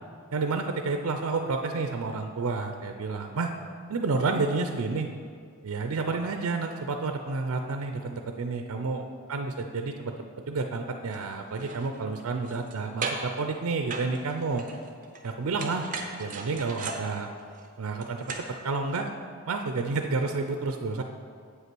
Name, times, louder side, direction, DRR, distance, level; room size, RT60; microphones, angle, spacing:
voice 1, 0.3-3.5 3.9-5.1 5.6-10.1 10.5-14.6 15.2-15.8 16.2-17.3 17.8-18.3 18.6-19.1 19.5-21.0, right 4 dB, 70° right, 6 dB, 0.5 m, -30 dB
sound 1, 11.1-11.2 11.5-12.8 13.0-13.4 13.9-15.3 15.6-18.6 18.9-19.0, right 4 dB, 35° right, 0.7 m, -37 dB
7.9 x 5.6 x 6.0 m, 2.1 s
head